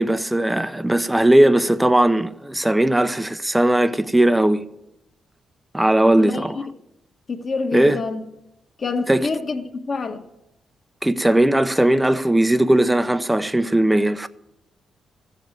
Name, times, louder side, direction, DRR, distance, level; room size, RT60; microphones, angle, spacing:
voice 1, 0.0-4.6 5.7-6.6 7.7-8.0 9.1-9.3 11.0-14.3, right 1 dB, 10° right, 0.6 m, -18 dB
voice 2, 6.2-6.6 7.3-8.3 8.8-10.2, left 4 dB, 45° left, 1.5 m, -27 dB
15.0 x 7.3 x 9.3 m
cardioid pair, 105°, 0 cm